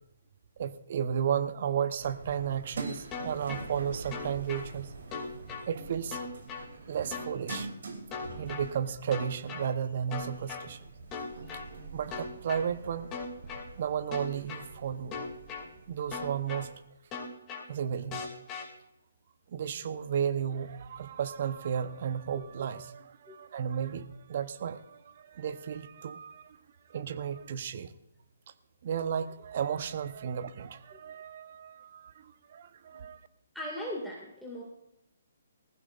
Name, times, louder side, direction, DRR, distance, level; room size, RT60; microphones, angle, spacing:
voice 1, 0.6-4.9 5.7-6.2 6.9-7.7 8.4-10.9 11.9-13.1 13.8-15.2 15.9-16.7 17.7-18.2 19.5-26.6 26.9-27.9 28.8-33.2, right 8 dB, 50° right, 13 dB, 0.9 m, -33 dB
sound 1, 2.0-16.8, right 3 dB, 70° right, 3.0 m, -45 dB
sound 2, 3.1-3.6 4.1-4.6 5.1-5.6 6.1-6.6 7.1-7.6 8.1-8.6 9.1-9.6 10.1-10.6 11.1-11.6 12.1-12.6 13.1-13.6 14.1-14.6 15.1-15.6 16.1-16.6 17.1-17.6 18.1-18.6, left 5 dB, 20° left, 2.5 m, -38 dB
voice 2, 33.5-34.6, equal, ahead, -5 dB, 2.2 m, -39 dB
20.0 x 15.5 x 2.5 m, 0.87 s
hypercardioid pair, 145°, 0 cm